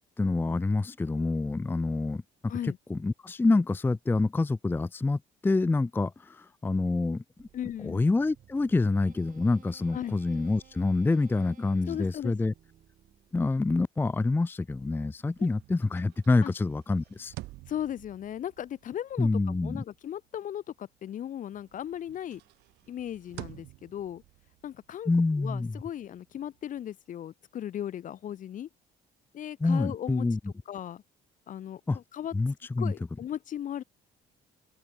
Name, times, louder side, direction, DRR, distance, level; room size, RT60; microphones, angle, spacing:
voice 1, 0.2-2.2 2.9-7.2 7.8-12.5 13.3-17.3 19.2-19.8 25.1-25.7 29.6-30.4 31.9-32.0 32.3-32.9, left 3 dB, 10° left, 0.5 m, -27 dB
sound 1, 7.4-13.6, right 10 dB, 55° right, 3.9 m, -58 dB
voice 2, 7.5-8.0 9.9-10.2 11.9-12.3 15.4-15.5 16.4-16.5 17.7-22.4 22.9-24.2 24.6-25.1 25.4-28.7 29.3-30.3 30.7-31.0 31.5-32.3 32.8-33.8, left 10 dB, 50° left, 1.1 m, -37 dB
sound 2, 14.7-21.2 21.5-26.9, right 19 dB, 85° right, 1.3 m, -51 dB
open air
cardioid pair, 110°, 17 cm